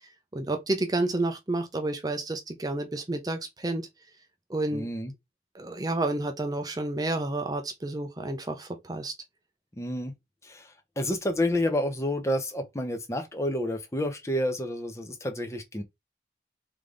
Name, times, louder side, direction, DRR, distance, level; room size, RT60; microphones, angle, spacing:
voice 1, 0.3-3.9 4.5-4.9 5.5-9.1, right 2 dB, 20° right, 0.5 m, -30 dB
voice 2, 4.7-5.1 9.8-10.1 10.4-15.8, left 1 dB, 15° left, 0.8 m, -29 dB
3.4 x 3.3 x 3.8 m
head